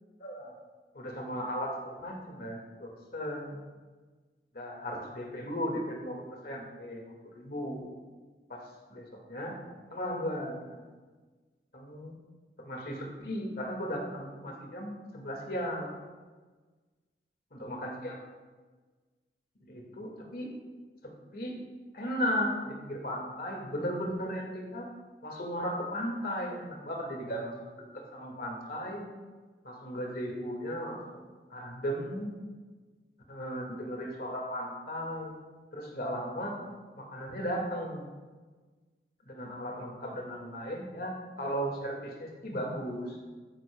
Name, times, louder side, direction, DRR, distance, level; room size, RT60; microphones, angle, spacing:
voice 1, 0.2-0.5 0.9-3.6 4.5-7.8 8.5-9.6 9.9-10.8 11.7-12.1 12.6-15.9 17.5-18.3 19.6-20.5 21.3-21.6 21.9-24.9 25.2-29.0 29.6-32.3 33.3-35.3 35.7-36.6 37.0-38.1 39.3-43.2, equal, 55° left, 0 dB, 1.9 m, -36 dB
13.5 x 9.9 x 2.3 m, 1.4 s
head